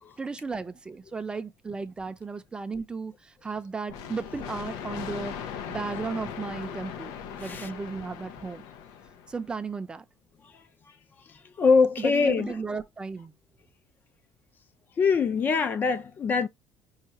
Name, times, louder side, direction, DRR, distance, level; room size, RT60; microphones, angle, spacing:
voice 1, 0.2-3.1 3.4-5.4 5.7-8.6 9.3-10.0 12.0-13.3, right 4 dB, 15° right, 0.6 m, -35 dB
sound 1, 3.9-9.5, left 7 dB, 85° left, 0.7 m, -39 dB
voice 2, 7.4-7.7 10.4-10.6 11.3-12.6 15.0-16.5, left 5 dB, 35° left, 0.5 m, -24 dB
5.6 x 2.4 x 2.9 m
cardioid pair, 140°, 6 cm